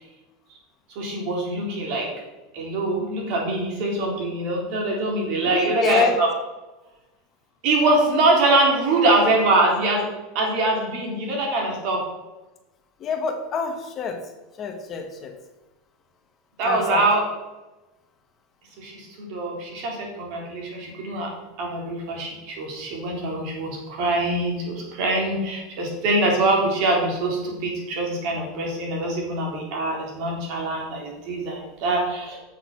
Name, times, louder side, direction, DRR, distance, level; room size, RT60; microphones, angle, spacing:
voice 1, 1.0-2.1 2.5-6.3 7.6-10.1 10.3-12.0 16.6-17.2 18.8-21.3 21.6-32.4, right 2 dB, 60° right, 0 dB, 3.6 m, -23 dB
voice 2, 5.5-6.2 13.0-14.2 14.6-15.3 16.7-17.1, left 5 dB, 35° left, 5 dB, 1.3 m, -26 dB
8.2 x 6.5 x 6.1 m, 1.1 s
supercardioid pair, 130°, 0 cm